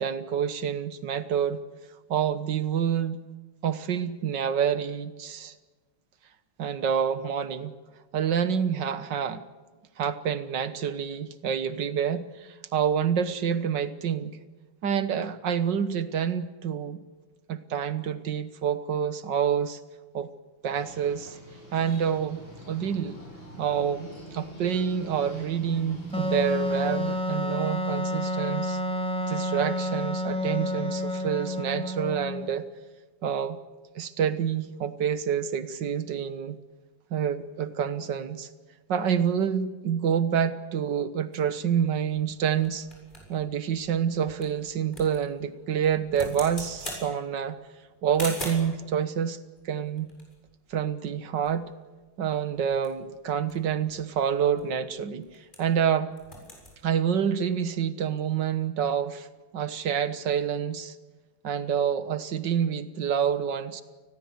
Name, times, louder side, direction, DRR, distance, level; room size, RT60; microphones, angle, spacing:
voice 1, 0.0-1.6 2.1-3.2 3.6-5.5 6.6-7.7 8.1-9.4 10.0-14.4 14.8-17.0 17.5-19.8 20.1-20.3 20.6-21.4 21.7-23.2 23.6-28.8 29.3-32.7 33.2-33.6 34.0-36.6 37.1-38.5 38.9-42.9 43.3-47.6 48.0-49.4 49.7-50.1 50.7-51.7 52.2-55.3 55.6-56.1 56.8-59.3 59.5-61.0 61.4-63.8, right 8 dB, 60° right, 13 dB, 1.9 m, -27 dB
sound 1, 20.6-27.1, right 1 dB, 65° left, 8.9 m, -44 dB
Wind instrument woodwind instrument, 26.1-32.6, left 1 dB, 5° left, 2.5 m, -29 dB
sound 2, 41.3-48.8 49.6-51.2 51.4-51.6 51.8-52.1 52.5-55.8 56.1-56.8, equal, 20° left, 7.4 m, -43 dB
29.5 x 20.0 x 8.1 m, 1.3 s
omnidirectional pair, 2.2 m